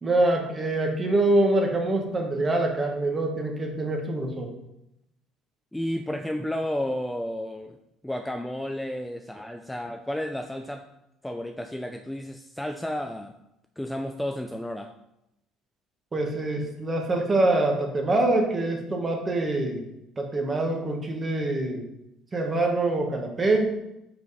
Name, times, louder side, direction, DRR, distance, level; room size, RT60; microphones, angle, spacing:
voice 1, 0.0-4.5 16.1-19.8 20.2-21.8 22.3-23.6, right 2 dB, 25° right, 2 dB, 1.3 m, -25 dB
voice 2, 5.7-7.8 8.0-10.8 11.2-13.3 13.8-14.9, left 1 dB, 5° left, 5 dB, 0.4 m, -32 dB
5.0 x 4.7 x 4.1 m, 0.84 s
supercardioid pair, 90°, 0 cm